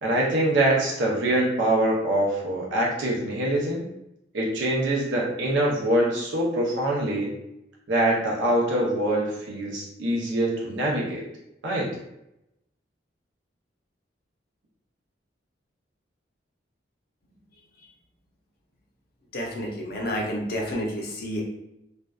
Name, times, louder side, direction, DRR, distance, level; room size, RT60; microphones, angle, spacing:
voice 1, 0.0-3.8 4.3-7.3 7.9-11.2 11.6-12.0, right 1 dB, 80° right, -3 dB, 0.6 m, -24 dB
voice 2, 19.3-21.4, equal, 55° left, -1 dB, 0.5 m, -30 dB
2.5 x 2.2 x 2.2 m, 0.84 s
head